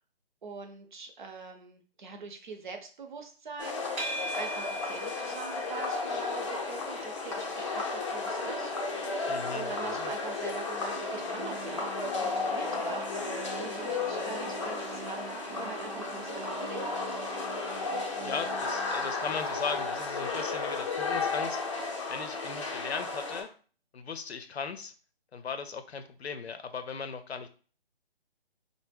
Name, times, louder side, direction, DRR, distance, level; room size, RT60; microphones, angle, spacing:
voice 1, 0.4-3.8 4.3-8.7 9.5-16.8, right 5 dB, 50° right, 4 dB, 0.7 m, -43 dB
sound 1, 3.6-23.4, left 3 dB, 30° left, 0.5 m, -34 dB
sound 2, 4.0-21.2, right 1 dB, 15° right, 0.6 m, -46 dB
voice 2, 9.3-10.1 18.2-21.6 22.1-23.5 23.9-24.9 25.3-27.5, left 5 dB, 90° left, 9 dB, 0.6 m, -38 dB
sound 3, 10.9-20.9, right 5 dB, 90° right, 0.6 m, -45 dB
3.3 x 2.1 x 3.4 m, 0.40 s
figure-of-eight pair, 155°, 31 cm